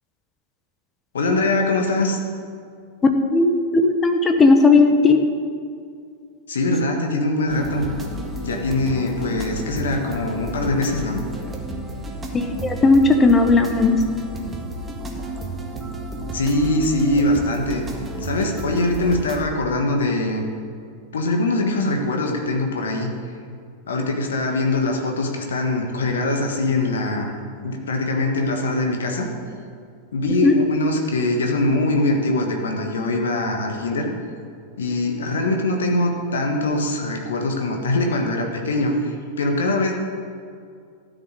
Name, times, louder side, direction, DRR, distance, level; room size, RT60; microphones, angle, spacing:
voice 1, 1.1-2.2 6.5-7.9 8.4-11.2 16.3-17.8 18.2-20.5 21.1-23.1 23.9-27.3 27.6-29.3 30.1-34.1 34.8-39.9, left 2 dB, 65° left, 2 dB, 1.6 m, -22 dB
voice 2, 3.3-5.2 12.3-13.9 30.4-30.5, left 3 dB, 20° left, 5 dB, 1.1 m, -16 dB
sound 1, 7.5-19.4, right 2 dB, 15° right, 1.6 m, -32 dB
13.0 x 6.5 x 8.2 m, 2.3 s
figure-of-eight pair, 90°, 0 cm